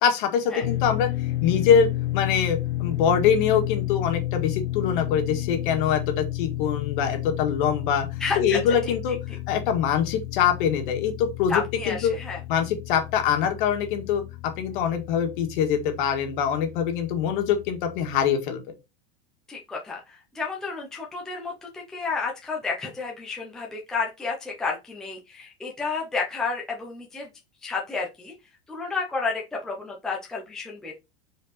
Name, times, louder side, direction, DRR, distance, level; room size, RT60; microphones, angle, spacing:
voice 1, 0.0-1.1 1.4-8.1 8.4-9.2 9.5-12.1 12.5-14.2 14.6-18.6, left 8 dB, 55° left, 5 dB, 1.9 m, -24 dB
sound 1, 0.6-18.3, left 16 dB, 75° left, 0.9 m, -32 dB
voice 2, 8.2-8.9 11.5-12.4 19.5-27.3 27.6-28.3 28.7-30.9, left 4 dB, ahead, -2 dB, 0.7 m, -31 dB
5.3 x 4.6 x 4.2 m, 0.24 s
supercardioid pair, 180°, 30 cm